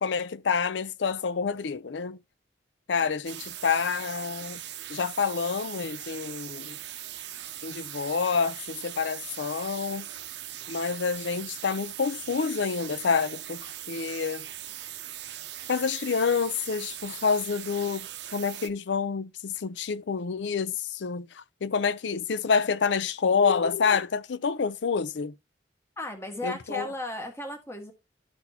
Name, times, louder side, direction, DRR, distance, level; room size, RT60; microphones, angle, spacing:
voice 1, 0.0-2.2 2.9-4.6 4.9-6.8 7.6-10.1 10.7-14.5 15.7-25.3 26.4-26.9, left 5 dB, 80° left, 0.5 m, -28 dB
sound 1, 3.3-18.7, right 12 dB, 75° right, 0.6 m, -40 dB
voice 2, 26.0-27.9, left 1 dB, 15° left, 1.4 m, -35 dB
12.0 x 4.1 x 2.8 m
head